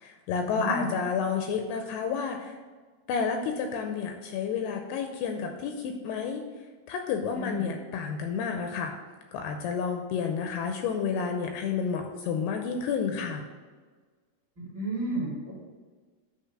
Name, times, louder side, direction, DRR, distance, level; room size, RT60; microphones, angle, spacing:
voice 1, 0.0-2.6 3.1-6.4 6.9-8.9 9.3-13.4, left 6 dB, 85° left, 4 dB, 2.5 m, -30 dB
voice 2, 0.5-0.9 7.4-7.7 14.6-15.5, right 1 dB, 35° right, -7 dB, 1.9 m, -32 dB
10.0 x 3.5 x 6.1 m, 1.4 s
omnidirectional pair, 5.0 m